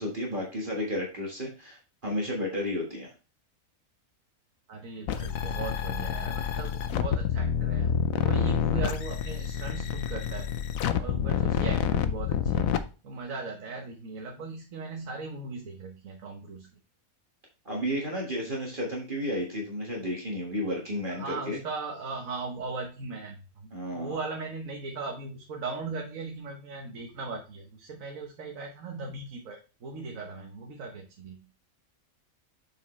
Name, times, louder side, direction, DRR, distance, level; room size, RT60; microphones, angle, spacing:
voice 1, 0.0-3.1 17.6-21.6 23.7-24.2, equal, 40° right, -1 dB, 1.8 m, -32 dB
voice 2, 4.7-7.9 8.2-10.5 10.9-12.7 13.0-16.7 21.1-31.4, right 3 dB, 75° right, 2 dB, 1.5 m, -38 dB
sound 1, 5.1-12.8, left 8 dB, 80° left, 1.1 m, -28 dB
7.2 x 5.1 x 3.1 m, 0.33 s
omnidirectional pair, 1.4 m